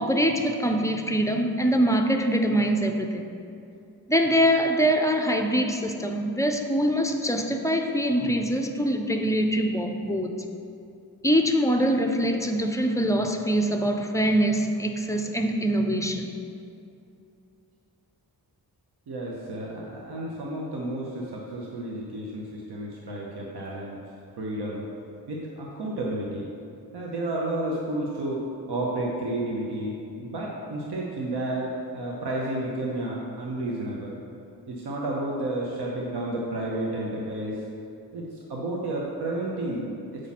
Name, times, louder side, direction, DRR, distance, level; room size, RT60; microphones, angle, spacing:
voice 1, 0.0-3.3 4.1-10.4 11.2-16.3, equal, 10° left, 4 dB, 0.4 m, -24 dB
voice 2, 19.1-24.0 24.4-24.8 25.3-26.5 26.9-34.2 34.7-37.6 38.1-39.9, right 1 dB, 85° right, -3 dB, 0.9 m, -31 dB
7.3 x 4.9 x 4.1 m, 2.6 s
wide cardioid pair, 150°, 38 cm